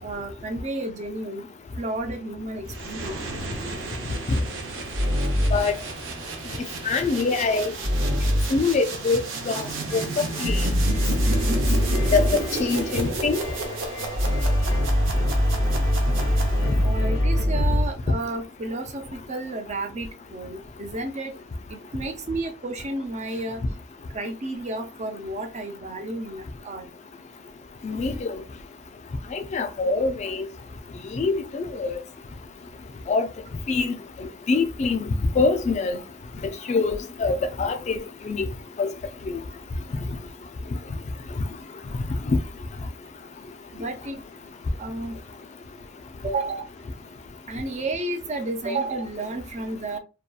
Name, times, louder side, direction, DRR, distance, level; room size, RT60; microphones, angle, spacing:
voice 1, 0.0-1.5 1.8-3.2 16.8-21.3 21.7-23.6 24.1-26.8 43.7-44.2 44.8-45.1 46.2-46.7 47.5-50.0, right 2 dB, 35° right, 0.5 m, -32 dB
sound 1, 2.7-17.0, right 3 dB, 80° right, 0.7 m, -33 dB
sound 2, 3.0-5.8 7.8-8.6 9.5-12.5 14.1-18.0, equal, 55° right, 1.0 m, -24 dB
voice 2, 6.8-7.7 8.5-9.7 9.9-10.0 10.4-10.6 12.1-13.4 27.8-28.4 29.3-30.4 31.1-32.0 33.1-33.3 33.7-33.9 34.2-35.0 35.4-36.0 36.7-38.0 38.3-38.5 38.8-38.9 42.3-42.4, left 4 dB, 35° left, 0.3 m, -24 dB
sound 3, 9.9-17.5, left 3 dB, 80° left, 0.6 m, -40 dB
2.7 x 2.2 x 2.3 m
head